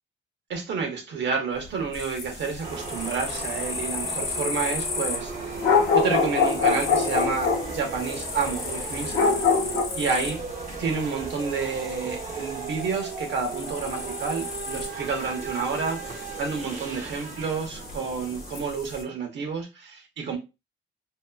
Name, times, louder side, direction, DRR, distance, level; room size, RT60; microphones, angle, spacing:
voice 1, 0.5-9.3 10.0-10.4 10.8-20.4, right 5 dB, 65° right, 0.9 m, -30 dB
sound 1, 1.9-19.0, left 4 dB, 50° left, 0.8 m, -37 dB
sound 2, 2.6-18.6, right 4 dB, 40° right, 0.7 m, -36 dB
sound 3, 5.6-7.7 9.1-9.8, left 5 dB, 80° left, 0.7 m, -22 dB
2.8 x 2.4 x 2.3 m
cardioid pair, 90°, 20 cm